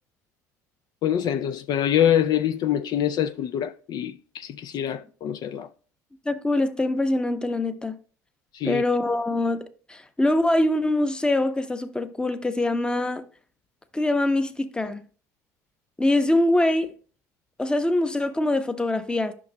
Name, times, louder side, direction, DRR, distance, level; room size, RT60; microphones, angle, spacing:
voice 1, 1.0-5.7 8.5-8.8, left 10 dB, 55° left, 0.4 m, -25 dB
voice 2, 6.3-8.0 8.6-9.6 9.9-13.2 13.9-15.0 16.0-16.9 17.6-19.3, left 1 dB, 10° left, 0.8 m, -23 dB
11.0 x 5.9 x 2.2 m
supercardioid pair, 80°, 8 cm